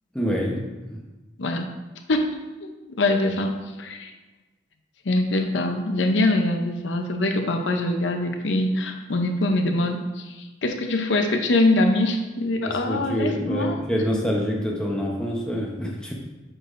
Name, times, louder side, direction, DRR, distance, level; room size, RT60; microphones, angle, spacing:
voice 1, 0.1-0.6 0.9-1.0 12.6-16.1, equal, 5° left, -2 dB, 0.8 m, -26 dB
voice 2, 2.6-4.1 5.1-13.8, left 2 dB, 90° left, 5 dB, 0.7 m, -23 dB
7.9 x 6.1 x 2.6 m, 1.1 s
head